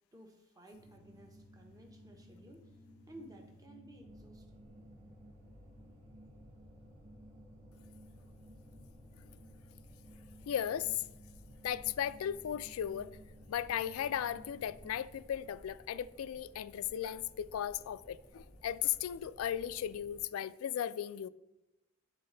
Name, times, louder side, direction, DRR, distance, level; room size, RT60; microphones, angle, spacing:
voice 1, 0.1-2.8 3.1-4.7, right 1 dB, 15° right, 0.9 m, -56 dB
sound 1, 0.7-15.1, equal, 70° right, 1.4 m, -57 dB
sound 2, 4.0-20.2, equal, 35° right, 1.4 m, -58 dB
voice 2, 10.5-11.0 11.6-13.1 13.5-21.3, left 10 dB, 80° left, 0.3 m, -36 dB
9.5 x 4.1 x 3.8 m
head